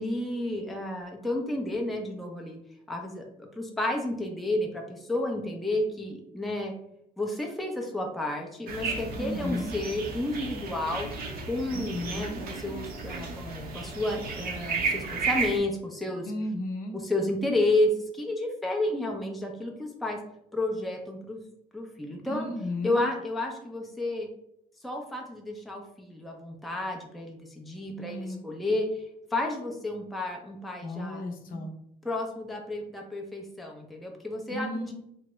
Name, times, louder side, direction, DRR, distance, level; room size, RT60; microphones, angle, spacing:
voice 1, 0.0-2.6 2.9-3.3 3.6-6.7 7.2-11.1 11.5-16.3 16.9-20.2 20.5-21.4 21.7-22.5 22.8-24.3 24.8-29.0 29.3-31.6 32.0-34.9, left 1 dB, ahead, 1 dB, 0.5 m, -31 dB
sound 1, 8.7-15.6, right 4 dB, 60° right, 0.7 m, -33 dB
voice 2, 9.2-9.7 11.7-12.4 16.2-17.0 22.3-23.0 28.0-28.4 30.8-31.7 34.5-34.9, left 1 dB, 55° left, 3 dB, 0.7 m, -34 dB
3.4 x 2.0 x 3.0 m, 0.74 s
cardioid pair, 110°, 17 cm